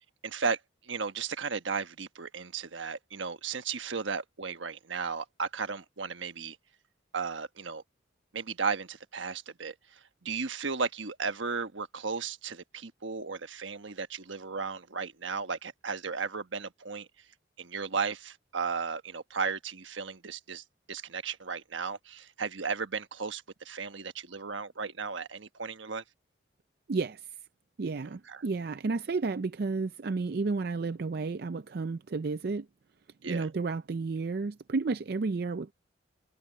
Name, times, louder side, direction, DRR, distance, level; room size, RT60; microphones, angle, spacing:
voice 1, 0.2-6.6 7.1-7.8 8.3-17.1 17.6-26.0 28.3-28.4 33.2-33.5, right 5 dB, 75° right, 1.2 m, -35 dB
voice 2, 26.9-27.3 27.8-32.7 33.3-35.7, right 4 dB, 50° right, 0.4 m, -32 dB
head